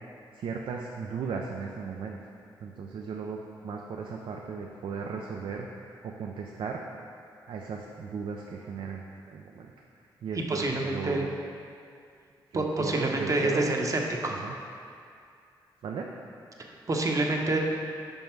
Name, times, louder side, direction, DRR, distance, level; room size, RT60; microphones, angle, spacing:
voice 1, 0.4-2.2 2.6-6.8 7.5-9.0 9.3-9.7 10.2-11.3 12.5-13.7 14.4-14.5 15.8-16.1, right 5 dB, 70° right, 0 dB, 0.5 m, -36 dB
voice 2, 10.3-11.2 12.5-14.3 16.9-17.6, right 2 dB, 40° right, 1 dB, 0.9 m, -27 dB
5.4 x 5.3 x 4.5 m, 2.4 s
cardioid pair, 55°, 9 cm